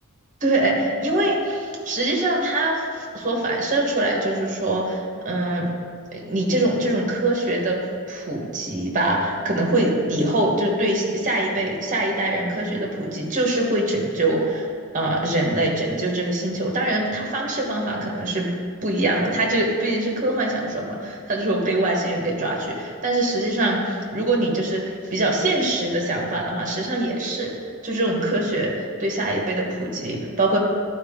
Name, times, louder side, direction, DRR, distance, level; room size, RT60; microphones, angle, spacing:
voice 1, 0.4-5.7 6.1-7.8 8.1-14.7 14.9-18.5 18.8-27.5 27.8-30.6, right 1 dB, 35° right, -1 dB, 1.3 m, -23 dB
11.5 x 4.5 x 3.7 m, 2.1 s
head